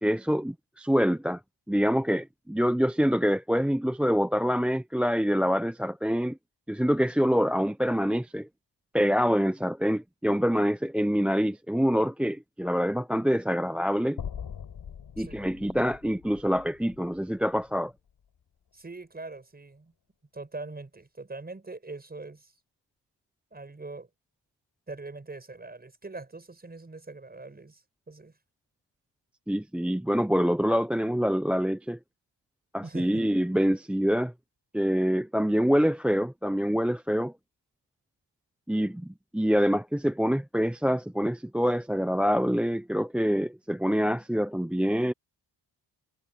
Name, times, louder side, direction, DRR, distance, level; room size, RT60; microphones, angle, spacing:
voice 1, 0.0-1.4 1.7-6.4 6.7-8.5 8.9-14.2 15.2-17.9 29.5-32.0 32.7-34.3 34.7-37.3 38.7-45.1, equal, 5° right, 0.4 m, -26 dB
sound 1, 14.2-18.4, left 8 dB, 65° left, 5.0 m, -42 dB
voice 2, 18.7-19.9 20.3-22.5 23.5-24.1 24.9-28.3 32.8-33.2, right 3 dB, 20° right, 6.5 m, -42 dB
wide cardioid pair, 130°, 44 cm